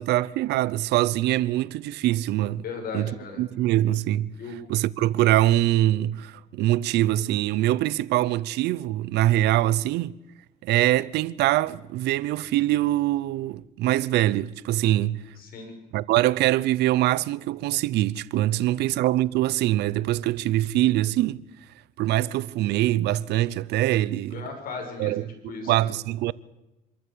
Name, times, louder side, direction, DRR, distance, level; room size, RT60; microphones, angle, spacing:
voice 1, 0.0-2.6 2.9-4.3 4.7-10.2 10.6-15.2 15.9-21.4 22.0-24.4 25.0-26.3, right 15 dB, 80° right, 0.7 m, -23 dB
voice 2, 2.6-3.4 4.4-4.6 9.7-9.8 15.4-15.7 18.5-18.9 24.3-25.9, left 4 dB, 60° left, 6.8 m, -37 dB
25.0 x 14.0 x 8.5 m
cardioid pair, 110°, 17 cm